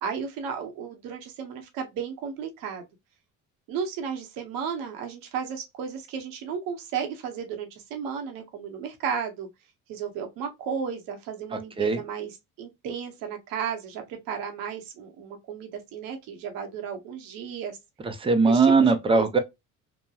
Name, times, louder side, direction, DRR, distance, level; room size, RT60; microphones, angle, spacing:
voice 1, 0.0-2.8 3.7-9.5 9.9-17.8 18.4-19.3, right 7 dB, 80° right, 0.9 m, -34 dB
voice 2, 18.0-19.4, right 4 dB, 15° right, 0.6 m, -20 dB
3.0 x 2.2 x 2.2 m
supercardioid pair, 90°, 33 cm